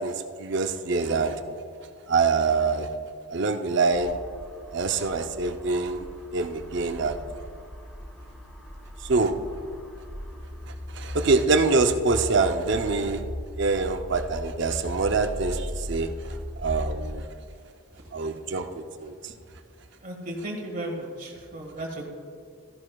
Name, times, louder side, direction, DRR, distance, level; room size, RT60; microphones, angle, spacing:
voice 1, 0.0-1.4 2.1-2.9 3.3-4.2 4.7-7.2 9.0-9.3 10.9-13.2 13.5-16.4 16.6-17.3 18.1-19.1, right 4 dB, 55° right, 7 dB, 0.6 m, -25 dB
sound 1, 3.9-17.2, equal, 5° left, 1.1 m, -38 dB
voice 2, 20.0-22.1, right 1 dB, 40° right, 0 dB, 1.8 m, -35 dB
14.0 x 11.0 x 2.3 m, 2.3 s
head